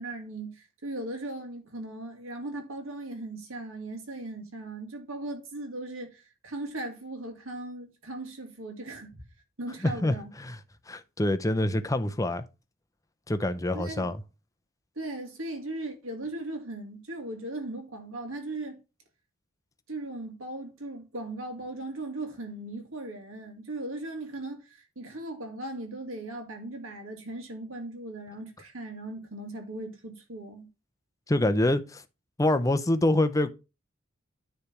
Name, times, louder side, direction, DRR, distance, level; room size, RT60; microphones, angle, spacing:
voice 1, 0.0-9.2 9.6-10.3 13.7-14.1 15.0-18.8 19.9-30.7, right 2 dB, 70° right, 2.1 m, -38 dB
voice 2, 9.8-10.6 10.9-12.4 13.3-14.2 31.3-32.0 32.4-33.5, left 1 dB, 15° left, 0.6 m, -26 dB
9.8 x 3.4 x 5.8 m
head